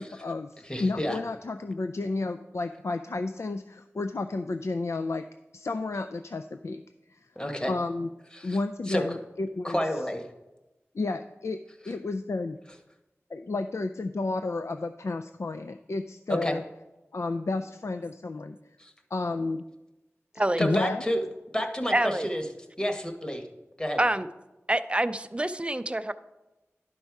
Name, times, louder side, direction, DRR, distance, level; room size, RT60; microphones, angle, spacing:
voice 1, 0.0-5.2 5.5-6.8 7.1-7.2 7.7-8.1 8.4-9.8 10.9-11.6 11.8-12.6 13.3-16.6 17.1-18.6 19.1-19.6 20.6-21.0, left 3 dB, 75° left, 8 dB, 0.3 m, -31 dB
voice 2, 0.7-1.2 7.4-7.7 8.3-8.6 8.9-9.0 9.6-10.2 16.3-16.5 18.8-18.9 20.6-21.2 21.5-22.4 22.8-23.4 23.8-24.0, equal, 15° left, 5 dB, 1.2 m, -29 dB
voice 3, 21.9-22.3 24.0-24.3 24.7-26.1, right 1 dB, 25° right, 12 dB, 0.4 m, -26 dB
11.5 x 5.4 x 4.7 m, 1.0 s
wide cardioid pair, 60°, 5 cm